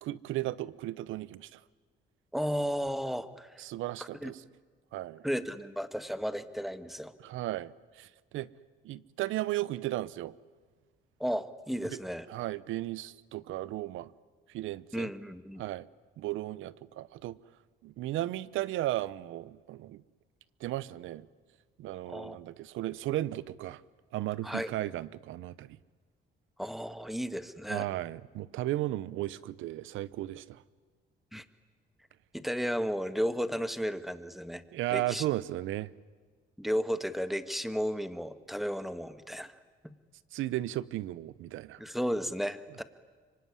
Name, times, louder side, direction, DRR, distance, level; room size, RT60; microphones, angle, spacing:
voice 1, 0.0-1.6 3.6-4.4 4.9-5.3 7.2-8.5 8.8-10.3 11.9-12.0 12.3-14.1 14.5-15.1 15.6-15.9 16.2-17.4 17.8-20.0 20.6-21.3 21.8-23.8 24.1-25.8 27.7-30.6 34.7-35.9 40.3-41.8, right 15 dB, 90° right, 18 dB, 0.8 m, -35 dB
voice 2, 2.3-3.5 4.2-4.3 5.2-7.1 11.2-12.2 14.9-15.6 22.1-22.4 24.4-24.7 26.6-27.9 31.3-31.4 32.3-34.6 34.9-35.2 36.6-39.5 39.8-39.9 41.8-42.8, equal, ahead, 11 dB, 1.5 m, -33 dB
25.5 x 24.0 x 9.8 m, 1.4 s
cardioid pair, 90°, 20 cm